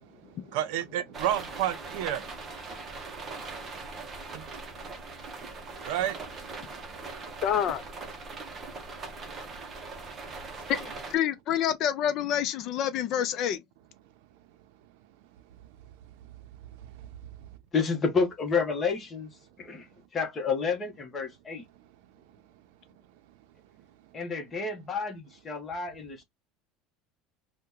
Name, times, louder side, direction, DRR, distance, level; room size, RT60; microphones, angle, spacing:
voice 1, 0.5-2.2 4.3-4.4 5.9-6.1, right 11 dB, 75° right, 0.5 m, -29 dB
sound 1, 1.1-11.2, right 3 dB, 25° right, 0.7 m, -41 dB
voice 2, 7.4-7.8 10.7-13.6, left 10 dB, 45° left, 0.5 m, -27 dB
voice 3, 17.7-19.3 19.6-19.9 20.1-21.6 24.1-26.2, left 5 dB, 20° left, 0.9 m, -30 dB
2.8 x 2.1 x 3.6 m
cardioid pair, 165°, 0 cm